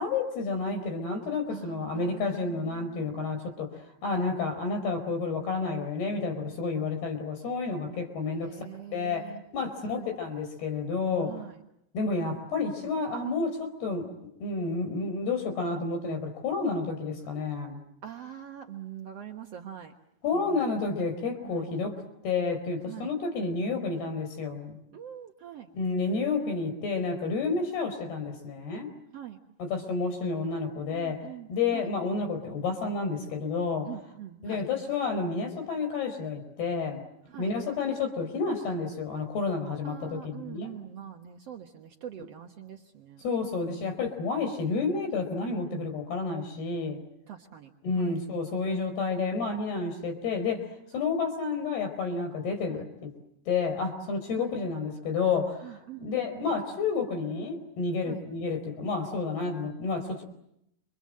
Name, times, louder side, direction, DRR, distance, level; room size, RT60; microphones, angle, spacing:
voice 1, 0.0-8.5 8.9-11.4 11.9-14.1 14.4-17.8 20.2-22.0 22.2-24.8 25.7-28.9 29.6-31.2 31.5-33.9 34.4-37.0 37.4-40.8 43.2-47.0 47.8-53.1 53.5-60.2, left 4 dB, 65° left, 6 dB, 6.6 m, -30 dB
voice 2, 1.5-3.3 8.4-9.4 9.8-10.1 11.2-11.5 18.0-19.9 20.3-20.6 21.4-21.7 22.9-23.1 24.9-25.7 29.1-29.4 30.9-31.9 33.9-34.7 37.3-37.5 39.8-43.2 45.4-45.9 47.3-47.7 48.0-48.2 52.7-52.8 54.4-54.5 55.6-56.5 58.1-58.2, right 10 dB, 65° right, 4 dB, 1.6 m, -44 dB
29.5 x 25.5 x 7.7 m, 0.80 s
omnidirectional pair, 4.8 m